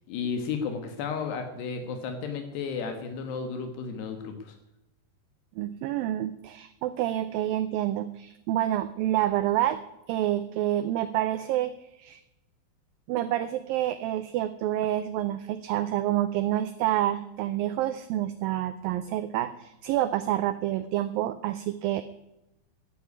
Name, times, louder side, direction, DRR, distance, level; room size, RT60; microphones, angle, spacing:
voice 1, 0.1-4.6, left 5 dB, 80° left, 6 dB, 3.5 m, -33 dB
voice 2, 5.6-9.8 10.1-11.7 12.0-12.2 13.1-22.0, right 13 dB, 80° right, 11 dB, 2.1 m, -28 dB
12.5 x 10.0 x 9.6 m, 0.92 s
omnidirectional pair, 4.8 m